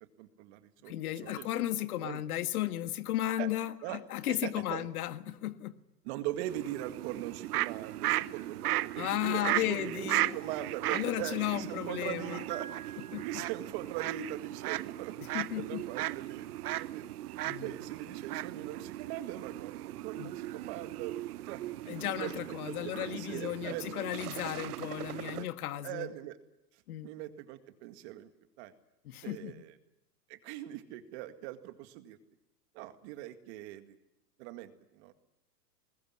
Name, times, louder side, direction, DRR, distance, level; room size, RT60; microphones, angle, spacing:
voice 1, 0.2-1.6 2.0-2.2 3.4-3.5 3.8-4.0 4.3-4.9 6.0-16.4 16.7-17.1 17.6-21.2 21.4-22.3 22.7-24.1 25.8-26.4 27.0-28.3 28.6-28.7 29.2-29.7 30.3-32.2 32.7-34.0 34.4-35.1, right 13 dB, 40° right, 8 dB, 2.1 m, -41 dB
voice 2, 0.9-5.7 9.0-10.4 10.9-12.4 13.1-13.3 15.2-15.8 17.4-17.8 20.2-20.3 21.9-26.1 26.9-27.1 29.0-29.6, left 13 dB, 65° left, 11 dB, 1.7 m, -35 dB
sound 1, 6.5-25.4, right 15 dB, 65° right, 0.9 m, -37 dB
Piano, 12.5-14.4, right 7 dB, 15° right, 1.6 m, -50 dB
20.5 x 20.0 x 9.7 m, 0.90 s
supercardioid pair, 150°, 48 cm